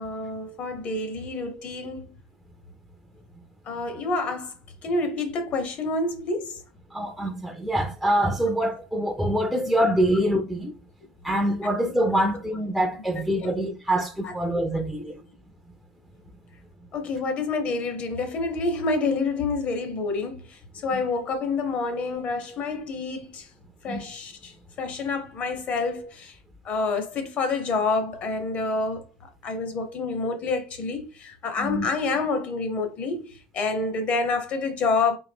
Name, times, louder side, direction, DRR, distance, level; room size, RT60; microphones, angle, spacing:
voice 1, 0.0-2.1 3.7-4.5 4.8-6.6 11.6-11.7 13.4-13.5 14.2-14.3 15.0-15.1 16.9-23.5 23.8-24.5 24.8-26.4 26.6-29.1 29.4-35.2, left 3 dB, 40° left, 0.9 m, -28 dB
voice 2, 6.9-10.7 11.2-15.1 20.9-21.0 23.9-24.0 31.6-31.9, right 1 dB, ahead, 0.4 m, -25 dB
3.7 x 2.6 x 3.5 m
supercardioid pair, 135°, 4 cm